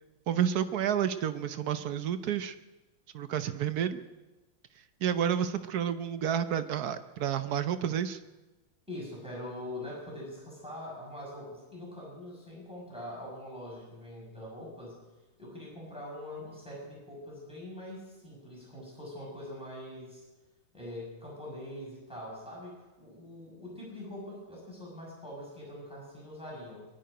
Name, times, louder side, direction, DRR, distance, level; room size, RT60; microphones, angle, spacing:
voice 1, 0.3-2.5 3.1-4.0 5.0-8.2, right 9 dB, 60° right, 11 dB, 1.1 m, -30 dB
voice 2, 8.9-15.0 15.4-20.2 20.7-26.9, left 1 dB, 5° right, -4 dB, 5.9 m, -43 dB
23.0 x 11.5 x 5.1 m, 1.1 s
omnidirectional pair, 2.2 m